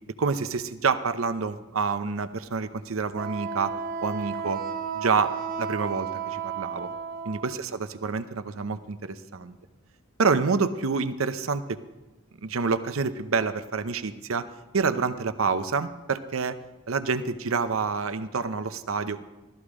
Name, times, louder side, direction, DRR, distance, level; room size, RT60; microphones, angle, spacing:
voice 1, 0.2-3.7 4.0-4.6 4.9-6.9 7.2-7.6 8.0-9.6 10.2-11.8 12.4-14.5 14.7-16.6 16.9-19.2, right 4 dB, 85° right, 12 dB, 0.8 m, -27 dB
Wind instrument woodwind instrument, 3.1-7.6, right 6 dB, 45° right, 0.9 m, -33 dB
16.0 x 13.5 x 4.9 m, 1.1 s
head